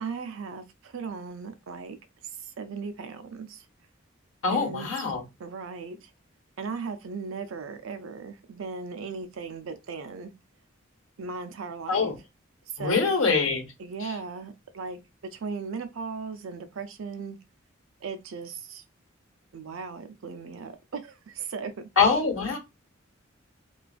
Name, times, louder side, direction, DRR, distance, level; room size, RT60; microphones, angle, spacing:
voice 1, 0.0-2.0 2.4-3.6 4.5-4.9 5.4-6.1 6.6-10.3 11.2-12.1 12.7-13.2 13.8-17.4 18.0-18.8 19.5-21.7, right 5 dB, 75° right, 0.5 m, -37 dB
voice 2, 4.4-5.2 11.9-12.2 12.8-13.7 14.0-14.1 22.0-22.6, left 5 dB, 75° left, 0.9 m, -24 dB
2.4 x 2.3 x 2.4 m
head